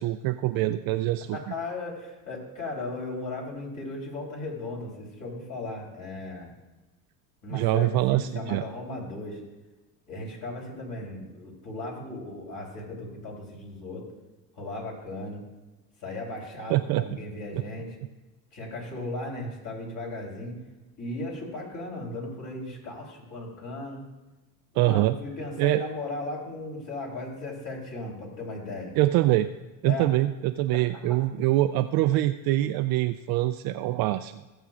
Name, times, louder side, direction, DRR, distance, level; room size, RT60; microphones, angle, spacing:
voice 1, 0.0-1.4 7.5-8.6 16.7-17.0 17.5-17.6 24.8-25.1 25.6-25.8 29.0-29.5 29.8-34.3, right 15 dB, 50° right, 8 dB, 0.5 m, -24 dB
voice 2, 1.3-6.5 7.4-9.4 10.1-14.1 14.5-15.4 16.0-18.0 18.5-20.5 21.0-24.0 24.7-29.0 29.8-30.1 30.7-30.8 31.1-31.2, left 2 dB, 40° left, -2 dB, 3.6 m, -36 dB
18.5 x 7.3 x 2.5 m, 1.1 s
supercardioid pair, 95°, 49 cm